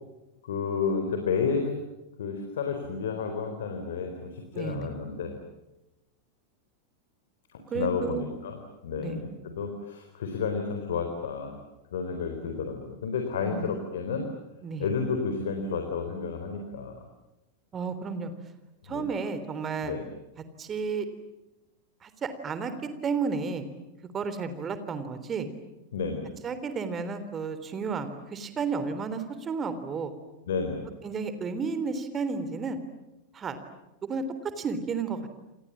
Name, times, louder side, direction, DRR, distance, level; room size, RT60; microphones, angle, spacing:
voice 1, 0.4-1.8 2.2-5.4 7.5-8.6 8.8-9.3 9.6-11.6 11.9-14.3 14.8-17.0 18.9-19.1 19.8-20.0 25.9-26.3 30.5-30.9, left 5 dB, 60° left, 5 dB, 4.1 m, -31 dB
voice 2, 4.5-4.9 7.7-8.2 9.0-9.2 13.4-13.7 14.6-14.9 17.7-18.3 18.8-19.9 20.6-21.0 22.0-23.7 24.1-25.5 26.4-30.1 31.0-32.8 33.3-33.6 34.0-35.3, right 5 dB, 25° right, 11 dB, 3.5 m, -32 dB
28.5 x 28.5 x 7.4 m, 1.0 s
figure-of-eight pair, 90°, 0 cm